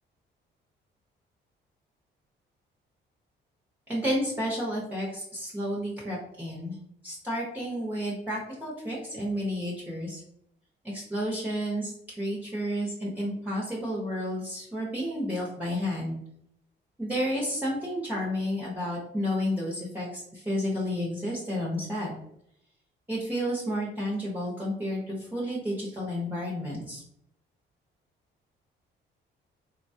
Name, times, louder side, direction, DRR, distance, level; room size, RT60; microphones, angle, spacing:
voice 1, 3.9-6.8 7.0-10.2 10.8-16.2 17.0-22.1 23.1-27.0, equal, 10° right, -5 dB, 0.9 m, -31 dB
3.9 x 2.2 x 2.7 m, 0.74 s
cardioid pair, 90°, 20 cm